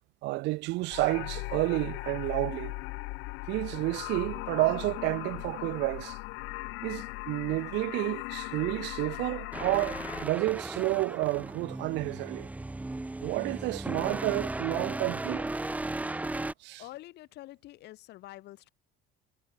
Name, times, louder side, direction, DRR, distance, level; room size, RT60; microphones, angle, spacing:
voice 1, 0.2-2.8 3.5-6.2 6.8-12.5 13.2-15.5 16.6-16.8, right 21 dB, 65° right, 0.6 m, -30 dB
sound 1, 0.9-10.3, left 25 dB, 85° left, 1.7 m, -38 dB
sound 2, 9.5-16.5, right 2 dB, 5° right, 2.1 m, -36 dB
voice 2, 16.8-18.7, left 16 dB, 60° left, 6.5 m, -47 dB
cardioid pair, 160°, 19 cm